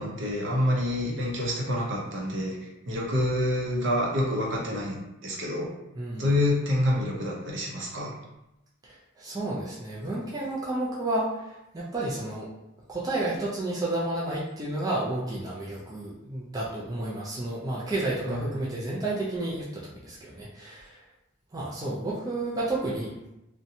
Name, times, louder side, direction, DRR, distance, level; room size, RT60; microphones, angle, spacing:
voice 1, 0.0-2.6 2.9-5.0 5.2-5.7 6.2-8.1 18.3-18.7, left 1 dB, 60° right, -2 dB, 0.6 m, -27 dB
voice 2, 6.0-6.3 8.8-12.5 12.9-21.0 21.5-23.1, right 2 dB, 15° right, -6 dB, 0.3 m, -31 dB
2.7 x 2.1 x 2.6 m, 0.92 s
head